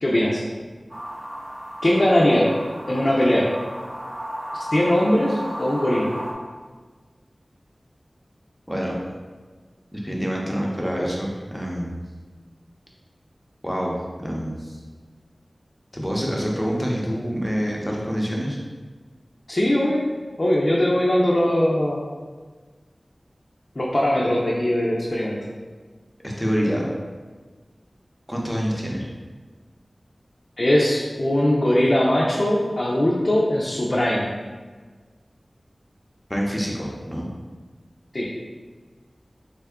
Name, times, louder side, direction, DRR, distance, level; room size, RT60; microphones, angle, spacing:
voice 1, 0.0-0.4 1.8-2.5 2.9-3.5 4.7-6.1 19.5-20.0 20.4-22.0 23.8-25.4 30.6-34.3 38.1-38.3, left 1 dB, 50° left, -5 dB, 0.5 m, -20 dB
sound 1, 0.9-6.3, equal, 45° right, 0.7 m, -34 dB
voice 2, 8.7-9.0 9.9-12.0 13.6-14.8 15.9-18.6 26.2-26.9 28.3-29.1 36.3-37.3, equal, 5° left, -2 dB, 0.7 m, -26 dB
3.5 x 2.2 x 3.5 m, 1.4 s
wide cardioid pair, 50°, 0 cm